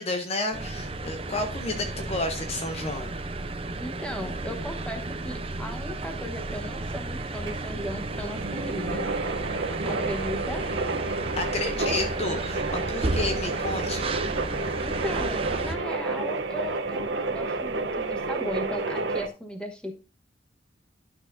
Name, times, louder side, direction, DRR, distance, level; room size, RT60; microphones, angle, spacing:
voice 1, 0.0-3.1 11.4-14.1, left 2 dB, 35° left, 6 dB, 0.8 m, -31 dB
sound 1, 0.5-15.7, right 2 dB, 30° right, 0.7 m, -33 dB
sound 2, 2.3-19.3, right 3 dB, 85° right, 0.9 m, -31 dB
voice 2, 3.8-9.5 9.8-10.6 14.5-20.0, equal, 5° left, 4 dB, 1.1 m, -37 dB
11.5 x 6.3 x 2.6 m, 0.31 s
head